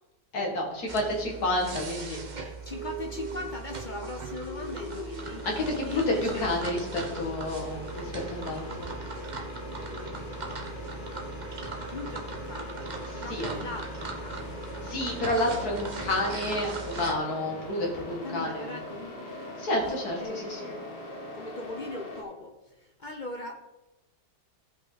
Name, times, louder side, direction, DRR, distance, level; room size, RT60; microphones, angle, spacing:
voice 1, 0.3-2.2 5.5-8.9 13.1-13.6 14.8-18.8 19.6-20.7, left 1 dB, 60° left, 0 dB, 2.5 m, -30 dB
sound 1, 0.9-17.1, right 4 dB, 35° right, 0.9 m, -39 dB
voice 2, 2.4-5.5 5.8-6.5 11.9-15.0 17.9-19.7 20.2-23.6, left 2 dB, 40° left, 3 dB, 0.7 m, -40 dB
sound 2, 2.7-22.2, left 1 dB, 85° left, 2.2 m, -41 dB
15.5 x 5.5 x 4.0 m, 0.98 s
omnidirectional pair, 1.8 m